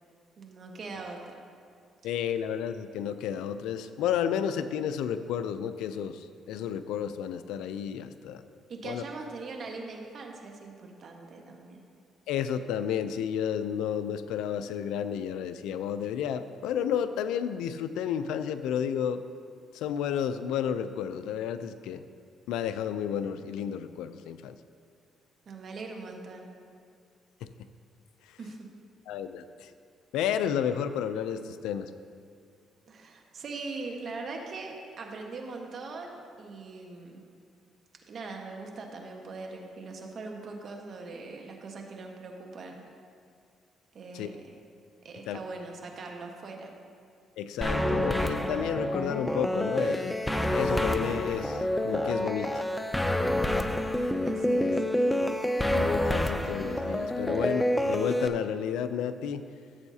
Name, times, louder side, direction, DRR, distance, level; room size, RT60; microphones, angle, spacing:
voice 1, 0.4-1.3 8.7-11.8 25.5-26.5 28.4-28.7 32.9-37.2 38.1-42.8 43.9-44.5 45.0-46.7 54.2-54.8, right 3 dB, 50° right, 1 dB, 1.3 m, -41 dB
voice 2, 2.0-8.4 8.8-9.0 12.3-19.2 19.7-22.0 22.5-24.6 27.4-27.5 29.1-29.7 30.1-31.9 44.1-44.3 45.3-45.4 47.4-50.2 50.5-52.6 55.7-59.4, left 8 dB, 90° left, 11 dB, 0.4 m, -31 dB
sound 1, 47.6-58.3, left 1 dB, 5° left, 0.5 m, -28 dB
14.5 x 7.9 x 2.8 m, 2.4 s
cardioid pair, 95°, 0 cm